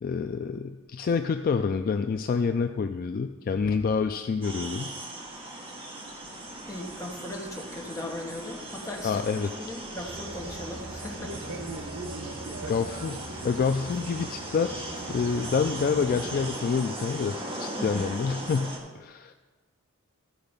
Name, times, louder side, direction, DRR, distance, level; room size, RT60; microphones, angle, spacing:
voice 1, 0.0-4.9 9.0-9.5 12.7-13.2 13.4-19.3, left 5 dB, 45° left, 7 dB, 0.3 m, -27 dB
sound 1, 4.4-18.8, right 1 dB, 25° right, 1.6 m, -39 dB
voice 2, 6.7-11.6 17.8-18.1, left 1 dB, 15° left, 0 dB, 1.4 m, -38 dB
sound 2, 10.0-16.5, right 2 dB, 75° right, 1.2 m, -40 dB
13.5 x 4.8 x 5.3 m, 1.3 s
head